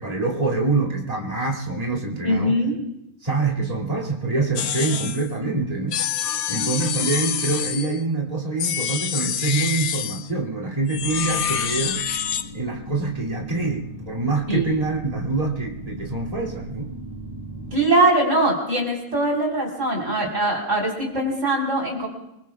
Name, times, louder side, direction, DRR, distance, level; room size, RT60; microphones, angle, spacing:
voice 1, 0.0-2.6 3.2-6.0 6.5-12.0 12.5-16.9, right 3 dB, 25° right, -2 dB, 2.7 m, -25 dB
voice 2, 2.2-2.8 14.5-14.7 17.7-22.1, right 1 dB, 55° right, -2 dB, 4.2 m, -21 dB
sound 1, 4.6-5.3 5.9-8.0 8.6-10.3 10.9-12.5, left 8 dB, 75° left, 1.2 m, -26 dB
sound 2, 10.9-17.8, equal, 50° left, 5.4 m, -38 dB
27.0 x 23.0 x 2.4 m, 0.87 s
omnidirectional pair, 1.5 m